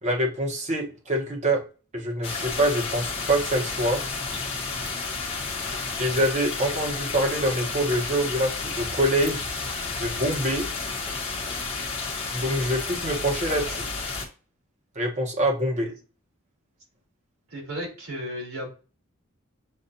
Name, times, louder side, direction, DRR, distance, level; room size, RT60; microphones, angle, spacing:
voice 1, 0.0-1.6 1.9-4.0 6.0-9.4 9.9-10.7 12.3-13.9 14.9-15.9, right 1 dB, 35° right, 1 dB, 1.1 m, -25 dB
sound 1, 2.2-14.3, left 4 dB, 30° left, 1.0 m, -31 dB
voice 2, 17.5-18.7, equal, 80° right, -2 dB, 2.5 m, -35 dB
7.2 x 2.4 x 2.7 m, 0.35 s
head